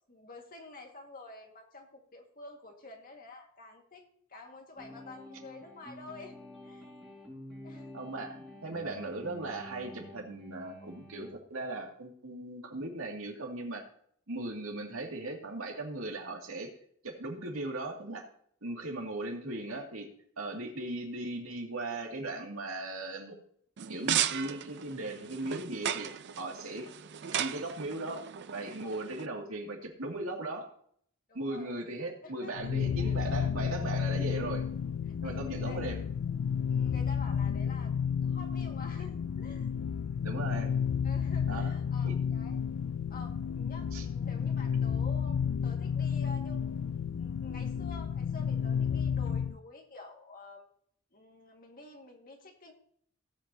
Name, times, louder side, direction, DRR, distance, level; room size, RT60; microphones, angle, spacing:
voice 1, 0.1-4.0 4.3-6.4 6.6-6.9 7.6-8.0 19.0-19.1 26.4-26.6 31.3-31.8 32.2-33.5 35.1-35.8 36.7-37.9 38.2-39.7 40.4-40.7 41.0-42.6 43.1-50.7 51.1-52.7, left 2 dB, 40° left, 2 dB, 1.9 m, -49 dB
sound 1, 4.8-11.3, equal, ahead, 5.3 m, -48 dB
voice 2, 7.9-13.9 14.3-16.7 17.0-18.3 18.6-20.1 20.4-23.4 23.9-26.9 27.3-28.3 28.5-30.7 31.3-34.6 35.2-36.0 40.2-40.7 41.5-41.7 42.0-42.1 43.9-44.0, right 2 dB, 75° right, 1 dB, 2.4 m, -38 dB
sound 2, 23.8-29.3, right 10 dB, 55° right, 0.5 m, -35 dB
sound 3, 32.6-49.6, left 7 dB, 65° left, 0.3 m, -31 dB
17.5 x 8.0 x 2.8 m, 0.63 s
head